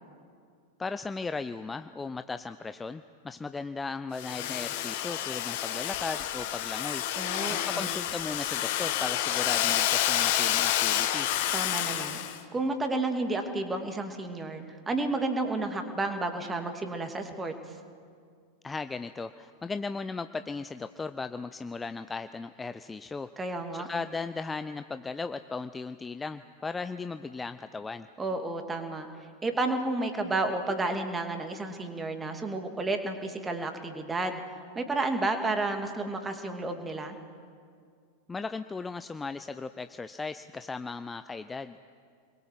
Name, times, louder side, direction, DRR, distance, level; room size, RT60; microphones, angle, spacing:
voice 1, 0.8-7.0 7.5-11.3 18.6-23.3 23.7-28.1 38.3-41.8, left 4 dB, 15° left, 11 dB, 0.6 m, -37 dB
Domestic sounds home sounds, 4.2-12.4, left 12 dB, 50° left, 1.6 m, -29 dB
voice 2, 7.2-7.9 11.5-17.5 23.4-23.9 28.2-29.1 29.4-34.4 34.7-37.2, right 2 dB, 15° right, 6 dB, 2.5 m, -31 dB
28.0 x 21.5 x 7.7 m, 2.2 s
figure-of-eight pair, 90°, 0 cm